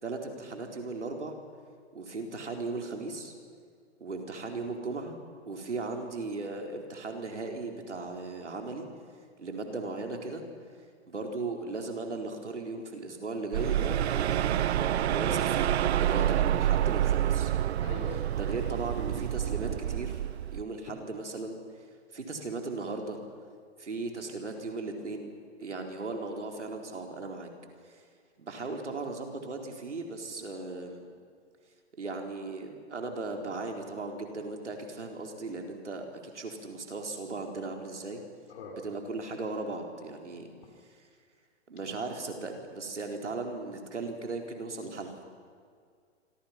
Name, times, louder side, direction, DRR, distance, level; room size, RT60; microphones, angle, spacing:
voice 1, 0.0-1.4 1.9-3.3 4.0-5.2 5.5-8.9 9.4-10.4 11.1-14.7 15.1-15.7 16.0-17.5 18.1-21.8 22.1-23.2 23.8-25.3 25.6-27.5 27.8-28.0 28.4-31.0 32.0-38.2 38.7-40.5 40.9-41.1 41.7-45.2, right 3 dB, 85° right, 3 dB, 4.1 m, -37 dB
sound 1, 13.5-20.6, right 11 dB, 70° right, 0.7 m, -28 dB
voice 2, 17.8-18.3 38.5-38.8 41.9-42.0, left 4 dB, 60° left, 1 dB, 5.1 m, -43 dB
27.5 x 24.5 x 5.9 m, 2.1 s
hypercardioid pair, 120°, 34 cm